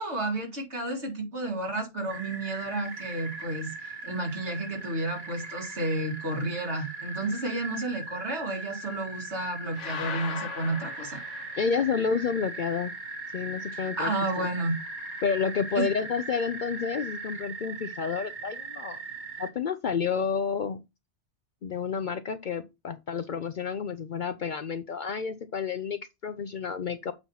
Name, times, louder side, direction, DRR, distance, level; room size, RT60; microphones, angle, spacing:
voice 1, 0.0-11.2 13.7-14.8 15.8-15.9, right 2 dB, 70° right, 2.5 m, -31 dB
sound 1, 2.1-19.5, right 3 dB, 40° right, 2.0 m, -39 dB
sound 2, 9.7-12.0, left 7 dB, 85° left, 1.1 m, -39 dB
voice 2, 11.5-12.9 13.3-14.5 15.2-19.0 19.4-20.8 21.6-27.1, left 6 dB, 55° left, 0.6 m, -30 dB
8.0 x 2.9 x 5.5 m
omnidirectional pair, 1.2 m